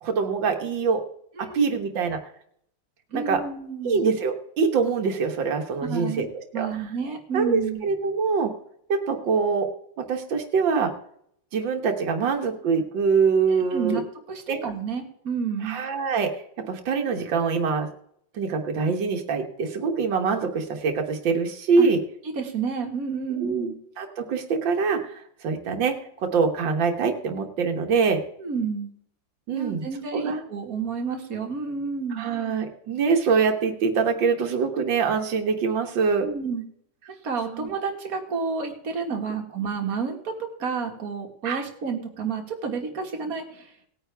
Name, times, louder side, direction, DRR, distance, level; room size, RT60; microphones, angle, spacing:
voice 1, 0.0-1.0 1.4-2.2 3.1-3.4 3.8-6.3 6.6-6.7 7.3-8.5 8.9-9.7 10.0-10.9 11.5-14.0 14.5-14.6 15.6-16.3 16.6-17.9 18.3-22.0 23.3-23.7 24.0-28.2 29.5-30.4 32.1-36.3 37.5-37.7 41.4-41.6, right 5 dB, 90° right, 5 dB, 2.0 m, -24 dB
voice 2, 1.4-1.8 3.1-4.0 5.9-6.3 6.5-7.8 13.7-14.0 14.3-15.8 21.8-21.9 22.4-23.8 28.4-28.9 29.5-32.3 36.2-36.6 37.2-40.3 40.6-43.7, right 5 dB, 50° right, 2 dB, 2.1 m, -30 dB
18.5 x 9.2 x 3.4 m, 0.68 s
omnidirectional pair, 2.0 m